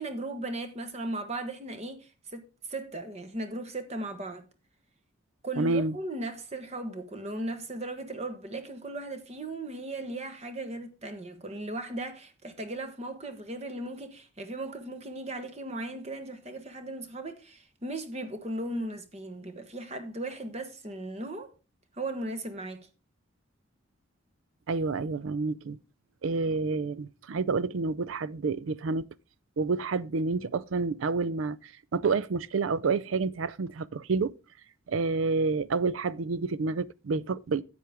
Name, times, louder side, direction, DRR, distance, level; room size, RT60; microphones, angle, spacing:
voice 1, 0.0-4.5 5.4-21.5 21.9-22.9, right 2 dB, 30° right, 1.1 m, -37 dB
voice 2, 5.6-5.9 24.7-25.8 26.2-29.1 29.6-34.3 34.9-37.6, right 4 dB, 80° right, 0.5 m, -29 dB
10.0 x 7.9 x 3.4 m
head